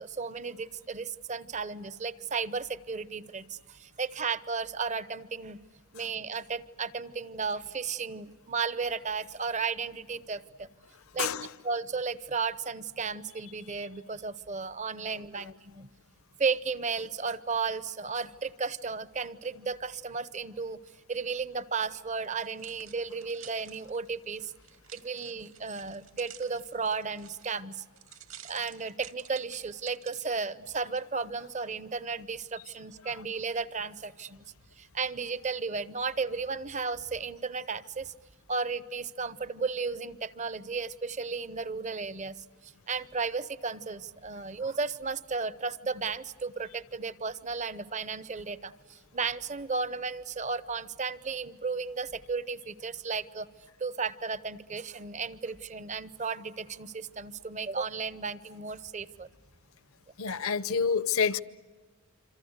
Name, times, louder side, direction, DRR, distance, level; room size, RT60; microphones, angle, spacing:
voice 1, 0.0-5.6 5.9-10.7 11.1-11.3 11.6-15.9 16.4-20.8 21.1-24.5 24.9-27.8 28.4-34.4 34.8-38.1 38.5-53.5 53.8-59.3 60.3-60.4, right 4 dB, 35° right, 0.8 m, -34 dB
sound 1, 22.2-30.3 30.9-31.0, right 10 dB, 65° right, 2.0 m, -51 dB
voice 2, 60.2-61.4, left 6 dB, 70° left, 0.8 m, -27 dB
27.0 x 26.5 x 8.1 m
head